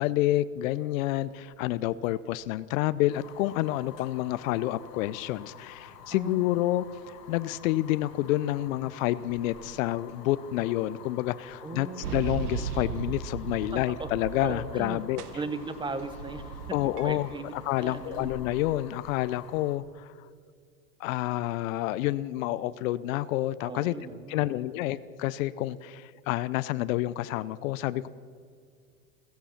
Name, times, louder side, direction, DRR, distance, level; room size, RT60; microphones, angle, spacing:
voice 1, 0.0-11.9 12.1-15.2 16.7-17.3 17.6-20.1 21.0-23.9 24.3-28.1, left 15 dB, 60° left, 16 dB, 0.6 m, -29 dB
sound 1, 1.0-19.2, right 2 dB, 45° right, 3.3 m, -55 dB
Fire, 3.1-19.8, left 7 dB, 85° left, 1.9 m, -50 dB
voice 2, 6.1-6.6 11.6-12.2 13.7-14.1 14.4-15.0 15.3-16.6 16.8-17.5 17.8-18.3 23.7-24.6, right 4 dB, 10° right, 11 dB, 0.9 m, -37 dB
sound 2, 12.0-14.9 15.2-18.7, right 7 dB, 75° right, 1.2 m, -38 dB
16.0 x 15.5 x 5.8 m, 2.1 s
hypercardioid pair, 115°, 47 cm